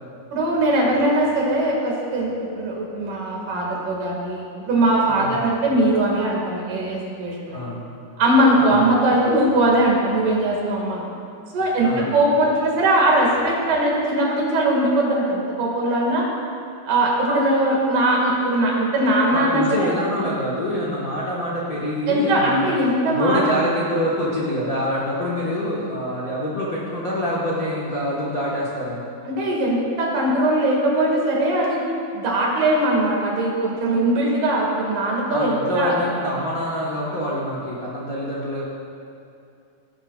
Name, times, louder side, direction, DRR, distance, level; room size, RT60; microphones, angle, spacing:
voice 1, 0.3-7.7 8.2-11.1 11.5-16.3 16.8-19.9 22.1-23.4 29.2-31.8 32.1-35.9, right 1 dB, 70° right, -3 dB, 3.5 m, -20 dB
voice 2, 19.3-22.7 23.1-29.0 35.3-38.6, equal, 90° left, -6 dB, 0.7 m, -26 dB
17.5 x 9.8 x 2.4 m, 2.5 s
omnidirectional pair, 3.8 m